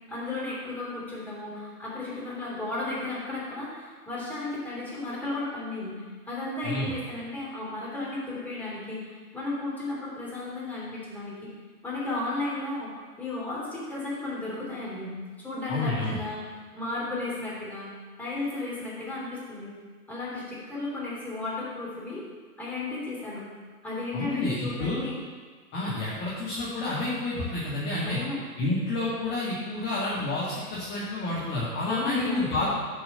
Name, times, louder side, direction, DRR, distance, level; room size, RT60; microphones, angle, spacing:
voice 1, 0.1-11.5 11.8-17.9 18.2-19.7 20.1-22.2 22.6-23.4 23.8-25.2 28.0-28.4 31.8-32.7, left 2 dB, 5° left, -8 dB, 3.0 m, -34 dB
voice 2, 15.7-16.2 24.1-25.0 25.7-28.2 28.6-32.7, left 2 dB, 20° left, -7 dB, 1.8 m, -29 dB
7.4 x 5.6 x 6.7 m, 1.4 s
figure-of-eight pair, 120°, 46 cm